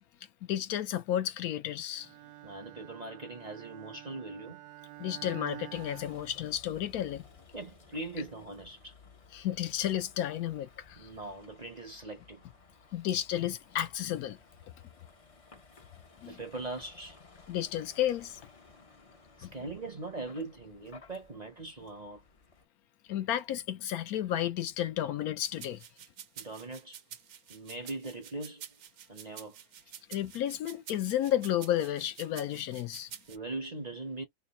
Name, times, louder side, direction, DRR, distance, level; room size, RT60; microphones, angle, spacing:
voice 1, 0.5-2.1 5.0-7.2 9.3-11.1 12.9-14.4 16.2-16.4 17.5-18.4 19.4-19.5 23.1-25.8 30.1-33.1, left 11 dB, 75° left, 1.0 m, -32 dB
Bowed string instrument, 2.0-6.9, right 16 dB, 90° right, 1.2 m, -49 dB
voice 2, 2.4-4.6 7.5-8.9 11.0-12.4 16.2-17.2 19.4-22.2 26.4-27.0 27.5-28.7 29.1-29.6 33.3-34.2, right 2 dB, 40° right, 0.6 m, -41 dB
Vehicle, 5.7-22.7, left 4 dB, 40° left, 0.5 m, -57 dB
sound 1, 25.4-33.4, right 9 dB, 65° right, 0.9 m, -48 dB
3.2 x 2.3 x 4.1 m
omnidirectional pair, 1.7 m